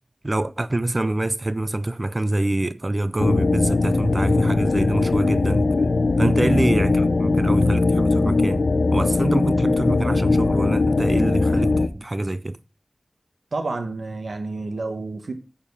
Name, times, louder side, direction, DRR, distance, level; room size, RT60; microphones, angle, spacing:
voice 1, 0.2-5.7 6.2-8.6 8.9-12.6, right 1 dB, 35° right, 0.4 m, -25 dB
sound 1, 3.2-11.9, left 3 dB, 90° left, 0.7 m, -20 dB
voice 2, 13.5-15.3, right 3 dB, 80° right, 1.5 m, -29 dB
7.3 x 7.0 x 5.5 m
wide cardioid pair, 65°, 0 cm